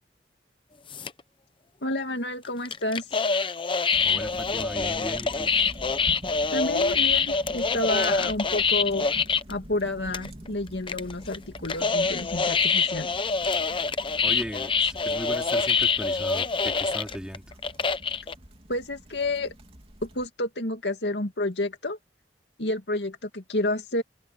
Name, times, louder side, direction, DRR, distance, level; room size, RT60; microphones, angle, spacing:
sound 1, 0.9-1.2 2.6-9.5 9.9-10.0 10.1-10.5 10.9-18.3, left 5 dB, 30° left, 0.8 m, -25 dB
voice 1, 1.8-3.1 6.5-9.1 9.5-13.1 18.7-19.5 20.0-22.0 22.6-24.0, left 2 dB, 75° left, 2.4 m, -30 dB
sound 2, 3.9-20.3, equal, 35° right, 3.2 m, -45 dB
voice 2, 4.0-5.5 14.2-17.4, equal, 5° right, 4.5 m, -37 dB
open air
head